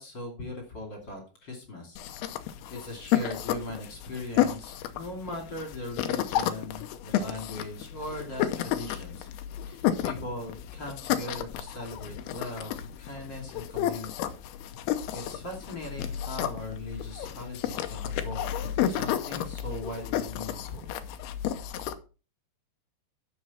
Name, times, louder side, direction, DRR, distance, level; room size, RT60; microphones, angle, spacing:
voice 1, 0.0-2.0 2.7-9.3 9.7-14.3 15.1-20.9, left 2 dB, 30° left, 1 dB, 2.8 m, -39 dB
sound 1, 2.0-21.9, left 11 dB, 75° left, 2.7 m, -32 dB
11.0 x 6.6 x 4.3 m, 0.35 s
omnidirectional pair, 4.8 m